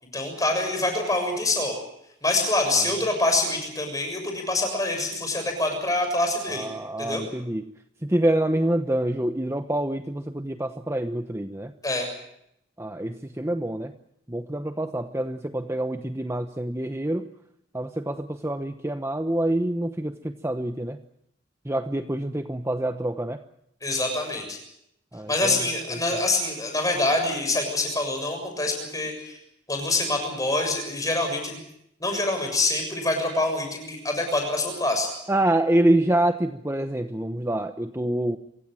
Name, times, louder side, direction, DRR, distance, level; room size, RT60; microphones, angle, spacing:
voice 1, 0.1-1.7 2.2-6.7 7.0-7.2 11.8-12.1 23.8-24.6 25.3-29.4 29.7-31.6 32.0-35.1, left 2 dB, 20° left, 4 dB, 7.0 m, -25 dB
voice 2, 6.5-7.7 8.0-11.7 12.8-13.9 14.3-17.3 17.7-21.0 21.6-23.4 25.1-26.0 35.3-38.4, right 1 dB, 15° right, 8 dB, 0.9 m, -26 dB
27.0 x 16.5 x 9.0 m, 0.77 s
head